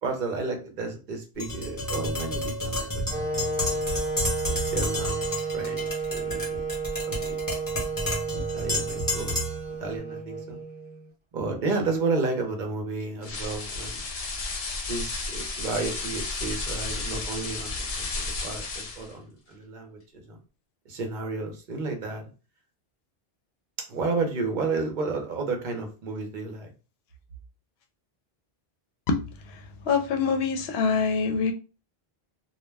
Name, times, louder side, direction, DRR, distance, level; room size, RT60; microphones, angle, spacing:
voice 1, 0.0-3.9 4.5-6.7 6.9-7.4 8.3-10.6 11.3-14.0 14.9-20.4 20.9-22.3 23.9-26.7, right 3 dB, 55° right, 0.7 m, -32 dB
Tap, 1.4-9.7, left 1 dB, 20° left, 0.8 m, -31 dB
sound 1, 3.1-11.1, right 4 dB, 10° right, 0.6 m, -32 dB
sound 2, 13.2-19.1, left 3 dB, 50° left, 0.5 m, -33 dB
voice 2, 29.1-31.5, left 5 dB, 80° left, 0.8 m, -25 dB
2.2 x 2.0 x 3.3 m
omnidirectional pair, 1.0 m